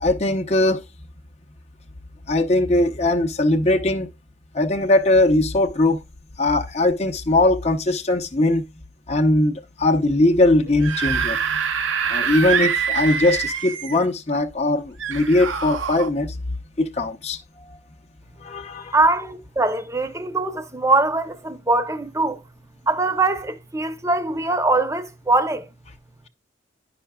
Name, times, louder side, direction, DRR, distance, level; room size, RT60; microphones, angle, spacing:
voice 1, 0.0-0.8 2.3-4.1 4.5-6.0 6.4-8.6 9.1-11.4 12.1-16.3 16.8-17.8 18.4-19.0, left 2 dB, 35° left, 0.7 m, -20 dB
Screaming / Screech, 10.7-14.0 15.0-16.1, right 6 dB, 80° right, 0.8 m, -25 dB
voice 2, 18.9-22.4 22.9-25.7, right 2 dB, 15° right, 0.8 m, -22 dB
11.0 x 5.8 x 2.3 m
head